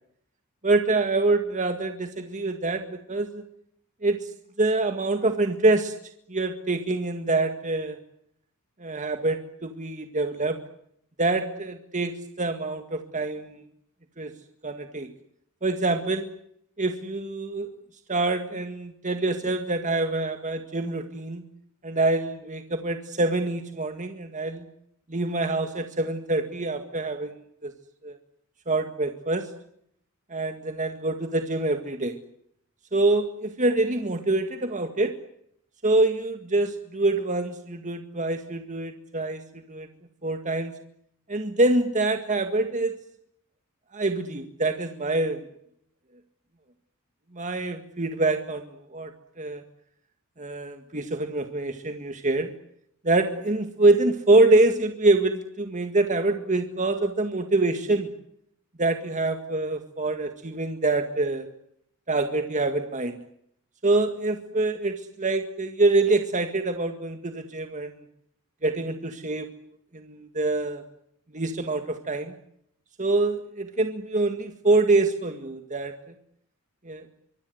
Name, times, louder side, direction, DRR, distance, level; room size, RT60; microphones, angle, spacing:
voice 1, 0.6-3.4 4.0-4.3 4.6-5.9 6.3-8.0 8.8-10.6 11.2-13.6 14.2-14.3 14.6-15.1 15.6-16.3 16.8-17.7 18.1-21.4 21.8-24.7 25.1-27.7 28.0-28.2 28.7-29.5 30.3-32.2 32.9-35.1 35.8-39.4 39.7-39.9 40.2-40.7 41.3-42.9 43.9-45.4 47.3-49.6 50.4-52.5 53.0-58.1 58.8-61.5 62.1-63.2 63.8-68.0 68.6-69.5 69.9-70.8 71.3-72.3 73.0-75.9 76.8-77.1, right 2 dB, 35° right, 7 dB, 1.9 m, -25 dB
25.0 x 25.0 x 8.0 m, 0.70 s
head